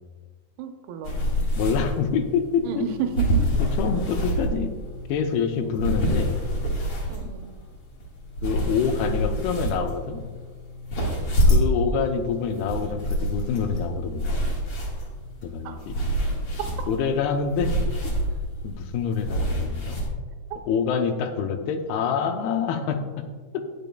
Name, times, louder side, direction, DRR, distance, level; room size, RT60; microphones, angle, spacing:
voice 1, 0.6-1.3 2.6-3.6 5.6-5.8 7.1-7.5 11.0-11.2 15.6-15.8 22.9-23.0, right 7 dB, 80° right, 5 dB, 2.7 m, -32 dB
sound 1, 1.0-20.1, equal, 50° left, 2.0 m, -27 dB
voice 2, 1.6-2.8 3.6-4.7 5.1-6.4 8.4-10.2 11.5-14.3 15.4-15.9 16.9-17.7 18.6-20.0 20.7-23.3 23.5-23.6, left 6 dB, 80° left, 6 dB, 2.7 m, -26 dB
20.0 x 6.9 x 2.3 m, 1.5 s
omnidirectional pair, 4.6 m